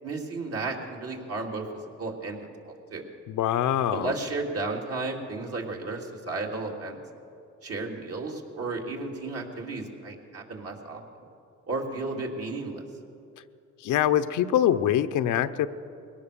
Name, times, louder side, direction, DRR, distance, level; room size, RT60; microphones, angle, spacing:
voice 1, 0.0-3.1 3.9-7.0 7.6-11.0 11.7-12.8, right 3 dB, 50° right, 0 dB, 3.3 m, -33 dB
voice 2, 3.3-4.1 13.8-15.7, left 11 dB, 80° left, 10 dB, 0.8 m, -24 dB
22.5 x 17.5 x 6.9 m, 2.6 s
cardioid pair, 90°, 30 cm